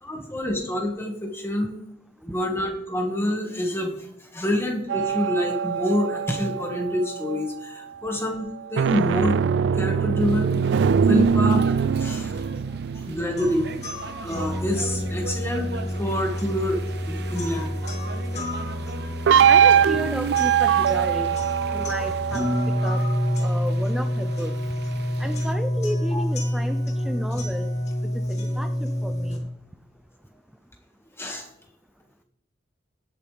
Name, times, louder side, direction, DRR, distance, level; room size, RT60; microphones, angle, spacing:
voice 1, 0.0-1.7 2.2-9.4 9.7-10.6 11.1-11.7 11.9-12.4 12.9-13.7 14.2-15.7 16.0-16.8 17.1-17.7 26.1-26.2 31.2-31.5, left 1 dB, 15° left, 2 dB, 1.9 m, -27 dB
sound 1, 4.9-7.5 8.6-15.4 19.3-23.5, right 7 dB, 80° right, 0.3 m, -23 dB
sound 2, 10.2-25.5, right 3 dB, 60° right, 0.8 m, -41 dB
sound 3, 13.4-29.4, equal, 40° left, 2.4 m, -28 dB
voice 2, 19.5-21.4 21.7-22.5 22.8-23.0 23.4-24.5 25.2-27.7 28.3-29.4, equal, ahead, 8 dB, 0.4 m, -32 dB
17.0 x 8.5 x 3.5 m, 0.81 s
head